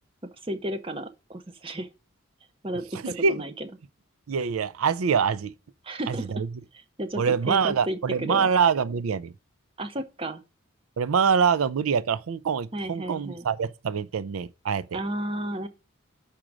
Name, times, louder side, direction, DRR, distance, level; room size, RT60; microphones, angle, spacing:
voice 1, 0.4-1.9 2.6-3.7 5.8-6.3 6.7-8.5 9.8-10.4 12.7-13.5 14.9-15.7, right 1 dB, 25° right, 0.8 m, -33 dB
voice 2, 2.9-3.4 4.3-5.5 6.1-6.5 7.2-9.3 11.0-15.0, right 6 dB, 90° right, 0.4 m, -25 dB
6.0 x 5.0 x 6.1 m
head